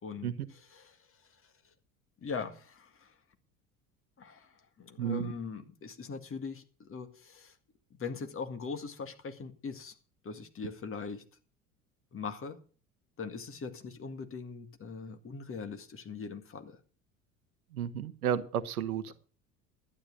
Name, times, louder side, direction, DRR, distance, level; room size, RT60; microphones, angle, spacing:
voice 1, 0.0-1.5 2.2-3.2 4.2-7.6 7.9-10.0 10.2-11.2 12.1-12.6 13.2-16.8, left 5 dB, 30° left, 2.0 m, -41 dB
voice 2, 5.0-5.3 17.7-19.1, right 9 dB, 75° right, 1.1 m, -32 dB
11.5 x 9.8 x 6.4 m
figure-of-eight pair, 70°, 44 cm